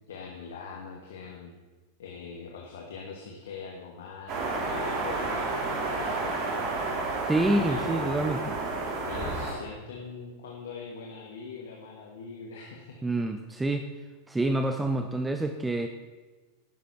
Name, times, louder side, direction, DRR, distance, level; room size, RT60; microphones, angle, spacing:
voice 1, 0.1-1.5 2.0-7.0 7.6-8.5 9.0-13.0, left 5 dB, 60° left, 0 dB, 2.3 m, -42 dB
sound 1, 4.3-9.5, right 3 dB, 40° right, 3.8 m, -31 dB
voice 2, 7.3-8.5 13.0-13.9 14.3-15.9, right 2 dB, 10° right, 6 dB, 1.0 m, -27 dB
17.0 x 12.5 x 4.6 m, 1.3 s
figure-of-eight pair, 90°, 0 cm